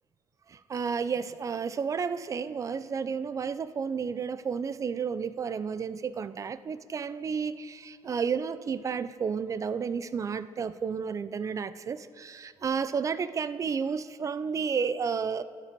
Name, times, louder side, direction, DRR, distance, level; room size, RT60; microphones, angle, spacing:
voice 1, 0.7-15.4, right 6 dB, 30° right, 15 dB, 0.4 m, -31 dB
14.0 x 9.8 x 4.5 m, 2.1 s
cardioid pair, 125°, 12 cm